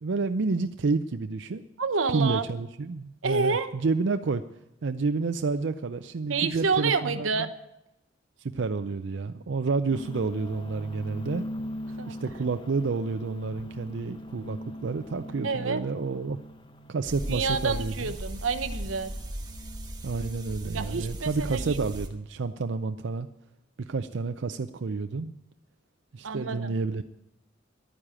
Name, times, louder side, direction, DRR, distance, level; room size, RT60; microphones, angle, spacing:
voice 1, 0.0-1.6 2.1-4.4 4.8-7.3 8.5-11.4 12.1-16.4 16.9-18.1 20.0-23.3 23.9-25.3 26.1-27.0, right 4 dB, 65° right, 9 dB, 0.5 m, -29 dB
voice 2, 1.8-2.4 3.2-3.7 6.3-7.5 12.0-12.1 15.4-15.8 17.3-19.1 20.7-21.8 26.2-26.8, right 4 dB, 90° right, 11 dB, 0.9 m, -28 dB
sound 1, 9.9-20.1, equal, 25° left, 0.9 m, -42 dB
sound 2, 17.0-22.1, right 1 dB, 20° right, 1.3 m, -37 dB
11.5 x 9.7 x 8.9 m, 0.88 s
head